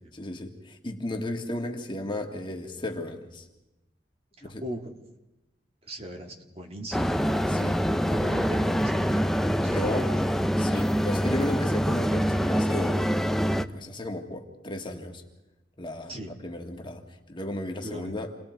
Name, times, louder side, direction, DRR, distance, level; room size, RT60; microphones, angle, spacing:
voice 1, 0.1-3.4 4.4-4.6 7.5-7.8 9.7-10.1 10.6-13.0 13.7-15.2 15.8-16.1 16.4-17.0 17.3-18.3, left 1 dB, 30° left, 2 dB, 2.0 m, -34 dB
voice 2, 4.4-4.9 5.8-7.2 8.1-10.3 16.1-16.4 17.8-18.2, right 1 dB, 35° right, 3 dB, 2.0 m, -38 dB
sound 1, 6.9-13.7, equal, ahead, 0.6 m, -25 dB
29.0 x 20.0 x 4.7 m, 0.97 s
head